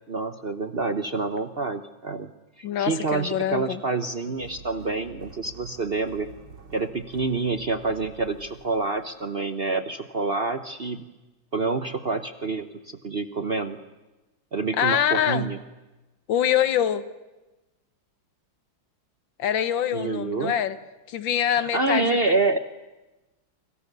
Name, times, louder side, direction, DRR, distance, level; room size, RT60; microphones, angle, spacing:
voice 1, 0.1-2.3 2.6-6.3 6.7-11.1 11.5-13.8 14.5-15.6 19.9-20.5 21.6-22.6, right 3 dB, 45° right, 9 dB, 0.9 m, -27 dB
voice 2, 2.6-3.8 14.8-15.5 16.3-17.0 19.4-20.8 21.1-22.2, left 9 dB, 75° left, 13 dB, 1.8 m, -24 dB
sound 1, 4.4-9.5, right 4 dB, 60° right, 3.1 m, -47 dB
29.0 x 26.0 x 6.8 m, 1.1 s
omnidirectional pair, 2.1 m